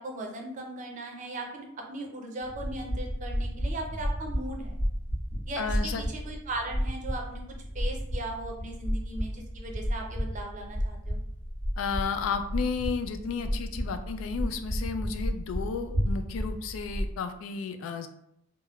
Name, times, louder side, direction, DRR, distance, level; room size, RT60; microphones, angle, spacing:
voice 1, 0.0-4.8 5.5-11.2, right 2 dB, 40° right, 2 dB, 0.5 m, -38 dB
sound 1, 2.4-17.1, equal, 70° left, 1.4 m, -32 dB
voice 2, 5.6-6.0 11.8-18.1, left 5 dB, 90° left, 8 dB, 0.3 m, -33 dB
3.5 x 2.0 x 2.3 m, 0.76 s
head